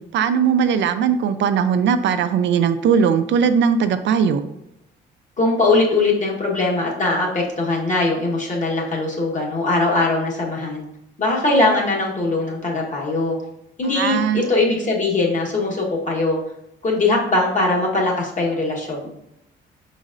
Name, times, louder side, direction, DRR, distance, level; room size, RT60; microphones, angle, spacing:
voice 1, 0.1-4.4 13.9-14.5, right 7 dB, 65° right, 9 dB, 0.4 m, -19 dB
voice 2, 5.4-10.8 11.2-13.4 13.8-16.4 16.8-19.1, left 2 dB, 40° left, -2 dB, 1.2 m, -21 dB
5.3 x 4.0 x 2.5 m, 0.82 s
cardioid pair, 90°, 20 cm